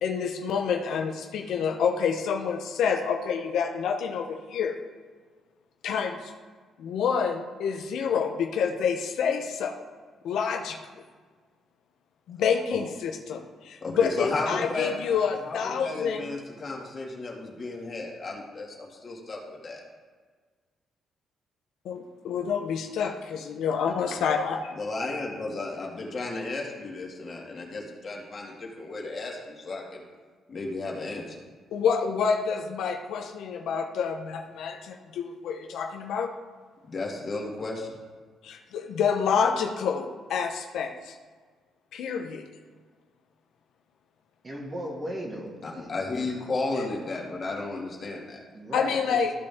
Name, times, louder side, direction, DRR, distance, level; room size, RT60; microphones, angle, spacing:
voice 1, 0.0-4.8 5.8-6.3 6.8-9.8 10.2-10.8 12.3-16.3 21.8-24.7 31.7-36.3 38.4-41.1 41.9-42.4 48.7-49.3, left 6 dB, 80° left, 4 dB, 0.6 m, -28 dB
voice 2, 13.8-15.2 15.4-19.8 24.8-30.1 30.5-31.4 36.9-38.0 45.6-48.4, left 3 dB, 40° left, -1 dB, 2.0 m, -33 dB
voice 3, 44.4-45.9 46.2-46.3 48.5-49.2, equal, 30° right, -1 dB, 2.1 m, -37 dB
14.0 x 5.1 x 3.6 m, 1.5 s
cardioid pair, 90°, 0 cm